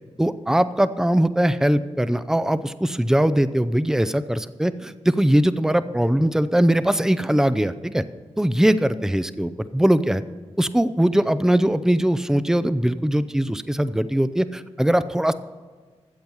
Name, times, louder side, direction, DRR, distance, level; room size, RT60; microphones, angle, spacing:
voice 1, 0.2-8.0 8.4-10.2 10.6-15.3, right 1 dB, 5° right, 13 dB, 0.6 m, -21 dB
13.5 x 7.9 x 5.5 m, 1.4 s
cardioid pair, 65°, 11 cm